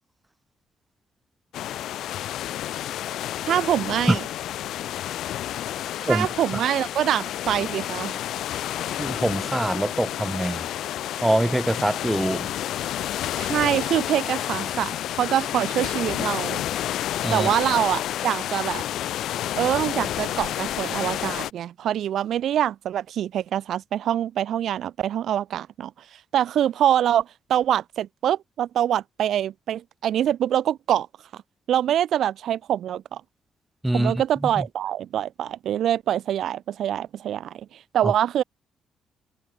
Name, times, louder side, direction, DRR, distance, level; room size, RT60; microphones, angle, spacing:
sound 1, 1.5-21.5, left 12 dB, 80° left, 0.4 m, -30 dB
voice 1, 3.5-4.2 6.0-8.2 13.4-16.6 17.3-18.8 19.5-25.9 26.3-31.1 31.3-31.4 31.7-33.2 33.9-38.4, right 10 dB, 70° right, 0.7 m, -25 dB
voice 2, 9.0-10.7 11.2-12.5 17.2-17.5 33.8-34.7 38.0-38.1, right 1 dB, 10° right, 1.7 m, -24 dB
cardioid pair, 90°, 0 cm